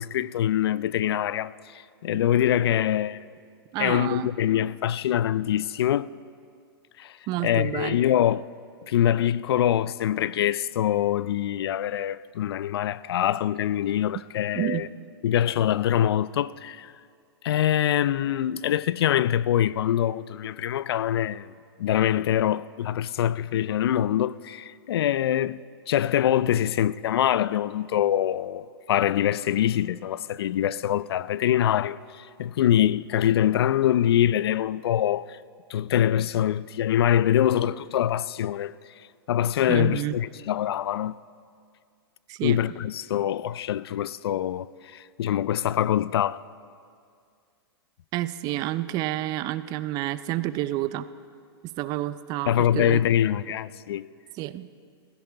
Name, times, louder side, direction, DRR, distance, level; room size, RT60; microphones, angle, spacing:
voice 1, 0.0-3.2 3.8-6.1 7.0-8.4 8.9-14.9 15.2-16.9 17.4-21.5 21.8-25.6 25.9-35.4 35.7-38.7 39.3-41.1 42.4-46.4 52.5-54.1, left 11 dB, 75° left, 0.4 m, -24 dB
voice 2, 3.7-4.3 7.3-8.0 14.5-14.9 39.7-40.2 42.3-42.6 48.1-51.1 51.6-53.0 54.4-54.7, right 15 dB, 30° right, 0.4 m, -29 dB
15.5 x 15.5 x 4.5 m
hypercardioid pair, 140°, 13 cm